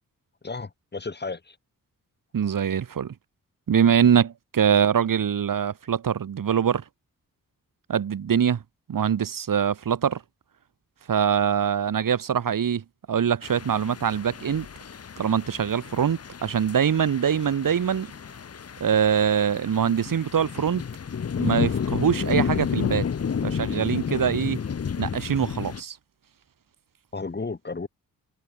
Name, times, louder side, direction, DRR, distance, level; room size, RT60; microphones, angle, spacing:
voice 1, 0.4-1.6 27.1-27.9, left 4 dB, 30° left, 5.9 m, -33 dB
voice 2, 2.3-3.1 3.7-6.8 7.9-8.6 8.9-10.2 11.1-14.7 15.2-18.1 18.8-20.8 21.4-23.1 23.4-24.6 25.0-26.0, right 8 dB, 70° right, 2.7 m, -23 dB
sound 1, 13.4-25.8, left 7 dB, 45° left, 1.3 m, -31 dB
wide cardioid pair, 160°, 34 cm